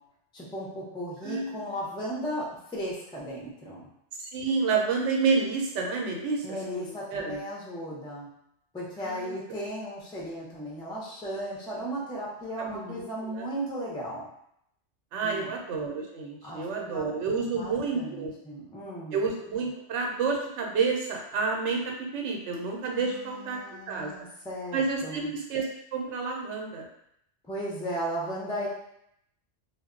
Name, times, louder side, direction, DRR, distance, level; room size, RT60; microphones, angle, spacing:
voice 1, 0.3-3.9 6.4-8.3 8.7-14.2 15.2-15.5 16.4-19.2 23.0-25.3 27.4-28.7, equal, 5° left, -5 dB, 0.3 m, -36 dB
voice 2, 1.2-1.6 4.2-6.4 6.8-7.4 9.0-9.6 12.6-13.5 15.1-18.3 19.1-23.6 23.9-24.1 24.7-25.7 25.9-26.8, right 4 dB, 80° right, 0 dB, 0.9 m, -29 dB
2.2 x 2.0 x 3.6 m, 0.76 s
omnidirectional pair, 1.2 m